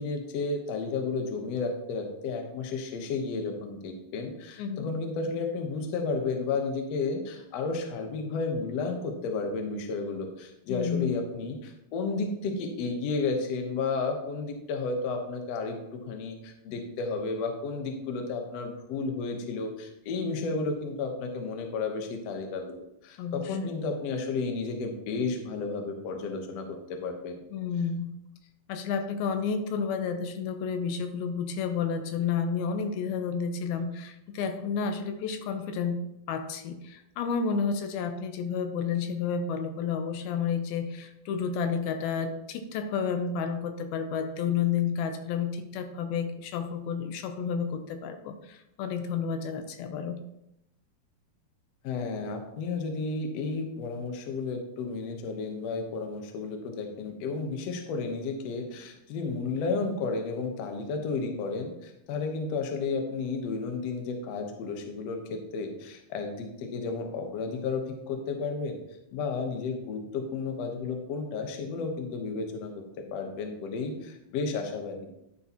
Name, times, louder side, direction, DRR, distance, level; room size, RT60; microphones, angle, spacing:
voice 1, 0.0-22.8 23.0-27.4 51.8-68.8 69.1-75.1, left 4 dB, 65° left, 4 dB, 1.7 m, -32 dB
voice 2, 10.7-11.1 23.2-23.8 27.5-28.1 28.7-36.0 36.3-50.2, left 6 dB, 85° left, 7 dB, 2.5 m, -31 dB
11.5 x 6.9 x 2.9 m, 0.84 s
omnidirectional pair, 4.4 m